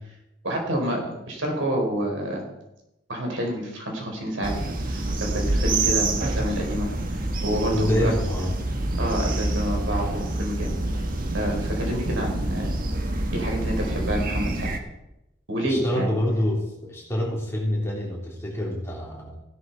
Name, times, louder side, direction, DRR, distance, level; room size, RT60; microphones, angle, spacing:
voice 1, 0.4-2.4 3.1-4.6 4.9-8.1 9.0-10.7 11.3-12.7 13.3-14.7 15.5-16.1, equal, 85° right, 1 dB, 4.2 m, -28 dB
sound 1, 4.4-14.8, right 2 dB, 45° right, 1.5 m, -27 dB
voice 2, 7.7-8.5 15.7-19.3, left 1 dB, 15° left, -3 dB, 3.4 m, -26 dB
16.0 x 11.0 x 4.6 m, 0.91 s
head